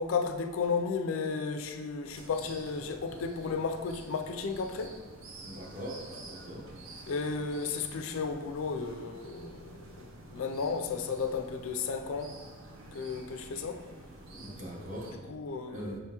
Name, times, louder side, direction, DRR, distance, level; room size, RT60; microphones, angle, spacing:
voice 1, 0.0-4.9 7.1-9.8 10.3-12.3 12.9-13.8 15.3-15.9, left 5 dB, 85° left, 0.4 m, -33 dB
sound 1, 2.0-15.1, right 2 dB, 75° right, 0.6 m, -49 dB
voice 2, 5.4-6.0 6.2-6.6 14.3-15.1 15.7-16.0, equal, 35° right, 0.9 m, -41 dB
5.2 x 3.4 x 2.9 m
head